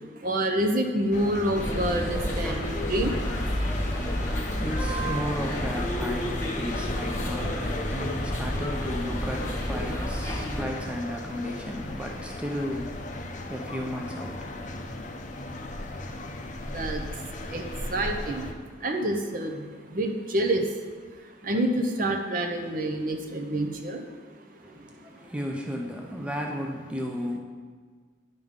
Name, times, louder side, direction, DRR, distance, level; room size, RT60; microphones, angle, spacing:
voice 1, 0.2-3.1 16.7-17.0 17.5-17.6 17.9-18.5 18.8-19.6 19.9-20.6 21.4-24.0, right 1 dB, 45° right, 4 dB, 0.6 m, -27 dB
sound 1, 1.1-18.5, left 2 dB, 40° left, 0.6 m, -36 dB
sound 2, 1.5-10.6, equal, 15° left, 1.2 m, -30 dB
voice 2, 4.1-14.8 24.6-27.4, equal, 5° right, 0 dB, 0.5 m, -34 dB
10.5 x 5.3 x 3.6 m, 1.6 s
head